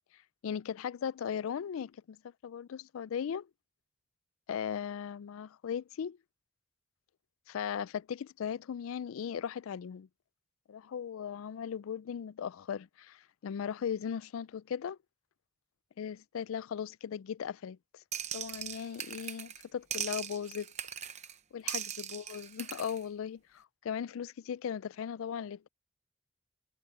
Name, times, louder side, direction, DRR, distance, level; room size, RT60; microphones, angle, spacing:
voice 1, 0.4-2.2 2.4-3.5 4.5-6.2 7.5-10.1 10.7-15.0 16.0-18.0 18.3-20.7 21.5-25.7, left 8 dB, 80° left, 0.3 m, -38 dB
sound 1, 18.1-19.6 19.9-21.3 21.7-23.0, right 9 dB, 35° right, 0.8 m, -39 dB
head